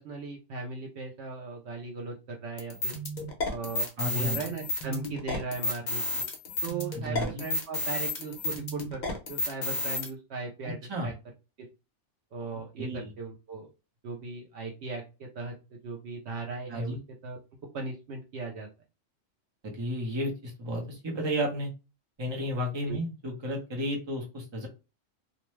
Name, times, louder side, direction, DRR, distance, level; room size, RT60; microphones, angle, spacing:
voice 1, 0.0-3.0 3.5-6.3 6.6-9.0 9.3-11.1 11.6-11.7 12.3-13.7 14.0-17.0 17.2-17.4 17.7-18.7 22.9-23.0, right 4 dB, 65° right, 0 dB, 0.8 m, -38 dB
sound 1, 2.6-10.1, left 2 dB, 45° left, 0.7 m, -32 dB
voice 2, 4.0-4.4 6.9-7.4 10.6-11.1 12.8-13.1 16.7-17.0 19.6-21.7 22.2-24.7, equal, 25° right, 0 dB, 0.7 m, -32 dB
2.5 x 2.1 x 3.0 m, 0.29 s
omnidirectional pair, 1.3 m